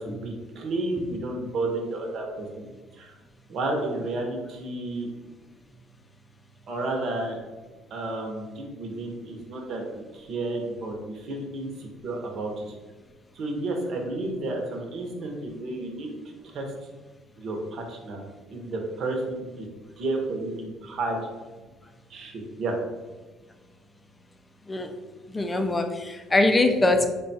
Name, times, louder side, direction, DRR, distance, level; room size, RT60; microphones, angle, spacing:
voice 1, 0.0-2.7 2.9-3.1 3.5-5.1 6.7-7.4 7.9-12.7 13.3-16.1 16.4-16.7 17.4-18.2 18.5-19.7 20.0-21.3 22.1-22.8, right 2 dB, 55° right, 2 dB, 0.8 m, -31 dB
voice 2, 25.3-27.1, left 2 dB, 20° left, 6 dB, 0.4 m, -22 dB
3.6 x 2.3 x 4.0 m, 1.3 s
cardioid pair, 105°, 0 cm